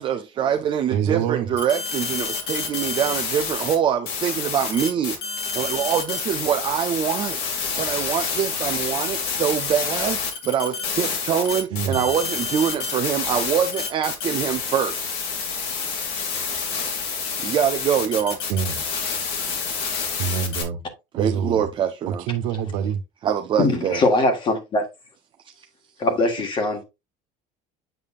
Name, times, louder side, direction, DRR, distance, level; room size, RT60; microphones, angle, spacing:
voice 1, 0.0-7.5 7.8-15.1 16.7-16.9 17.4-18.4 21.1-22.2 23.2-24.0 25.6-25.7, right 8 dB, 30° right, 0.5 m, -24 dB
voice 2, 0.9-1.5 11.7-12.0 18.5-18.8 20.2-20.8 21.1-21.7 22.1-23.0, right 8 dB, 80° right, 1.1 m, -25 dB
sound 1, 1.6-3.7 4.1-20.6, left 5 dB, 70° left, 2.4 m, -28 dB
voice 3, 23.6-24.8 26.0-26.8, left 2 dB, 30° left, 1.6 m, -21 dB
8.0 x 5.6 x 2.5 m
cardioid pair, 165°, 17 cm